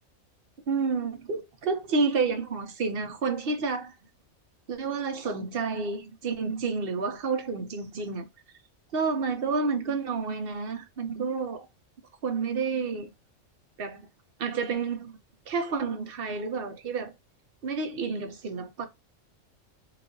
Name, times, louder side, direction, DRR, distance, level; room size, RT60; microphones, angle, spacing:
voice 1, 0.7-3.9 4.7-8.2 8.9-11.7 12.2-13.1 13.8-14.1 14.4-15.1 15.5-17.1 17.6-18.9, right 4 dB, 55° right, 0.9 m, -30 dB
3.9 x 2.6 x 2.6 m
omnidirectional pair, 1.3 m